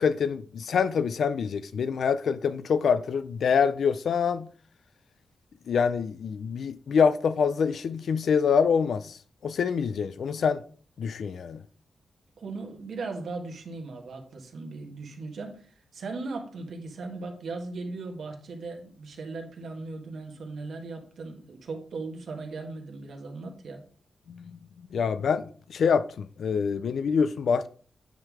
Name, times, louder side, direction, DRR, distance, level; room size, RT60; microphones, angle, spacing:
voice 1, 0.0-4.5 5.7-9.2 9.4-10.6 11.0-11.6 24.3-24.6 24.9-25.4 25.7-27.7, left 6 dB, 70° left, 0.4 m, -25 dB
voice 2, 12.4-23.8, right 3 dB, 65° right, 1.6 m, -38 dB
9.2 x 3.8 x 4.8 m
wide cardioid pair, 155°, 0 cm